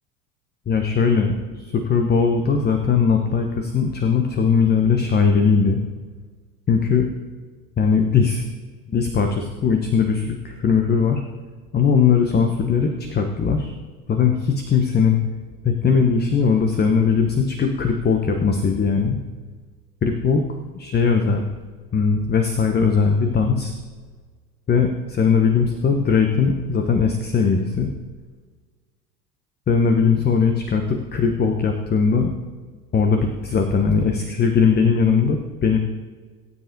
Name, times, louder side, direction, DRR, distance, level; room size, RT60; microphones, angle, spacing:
voice 1, 0.7-5.8 6.7-7.1 7.8-8.4 8.9-11.2 11.7-13.7 14.1-15.2 15.6-19.2 20.0-20.4 20.7-21.4 21.9-23.7 24.7-27.9 29.7-32.3 32.9-35.8, left 5 dB, 20° left, 5 dB, 1.1 m, -19 dB
20.0 x 9.7 x 2.8 m, 1.5 s
figure-of-eight pair, 75°, 46 cm